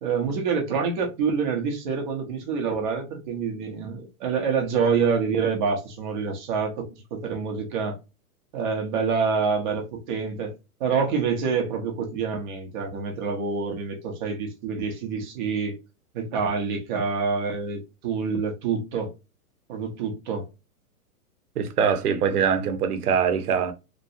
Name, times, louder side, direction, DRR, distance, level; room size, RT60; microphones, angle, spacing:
voice 1, 0.0-8.0 8.5-10.5 10.8-15.8 16.1-19.1 19.7-20.5, right 5 dB, 30° right, 0.8 m, -27 dB
voice 2, 21.6-23.7, right 7 dB, 80° right, 0.9 m, -23 dB
3.0 x 2.5 x 2.6 m
hypercardioid pair, 155°, 45 cm